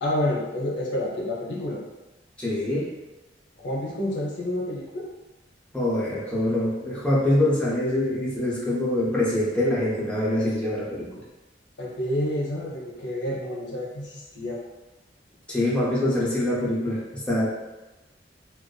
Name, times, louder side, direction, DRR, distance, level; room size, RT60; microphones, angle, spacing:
voice 1, 0.0-1.8 3.6-5.1 11.8-14.6, left 1 dB, 70° left, -3 dB, 0.6 m, -29 dB
voice 2, 2.4-2.9 5.7-11.2 15.5-17.5, left 1 dB, 5° left, -7 dB, 0.5 m, -24 dB
2.5 x 2.2 x 2.3 m, 1.1 s
head